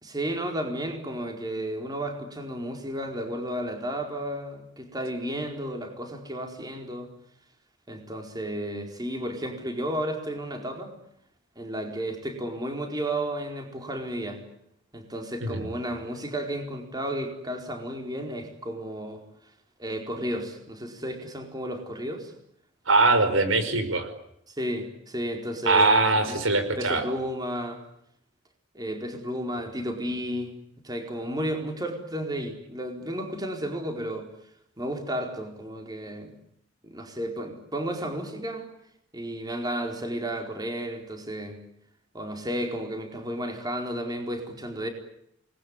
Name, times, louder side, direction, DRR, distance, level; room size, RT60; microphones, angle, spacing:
voice 1, 0.0-7.1 7.9-10.9 11.6-14.4 14.9-19.2 19.8-22.3 24.5-26.4 26.8-27.8 28.7-30.5 30.8-34.3 34.8-36.3 36.8-38.7 39.1-41.6 42.1-44.9, right 1 dB, 20° right, 4 dB, 4.5 m, -33 dB
voice 2, 22.9-24.1 25.7-27.0, right 3 dB, 85° right, 10 dB, 5.2 m, -22 dB
28.5 x 21.0 x 9.8 m, 0.75 s
head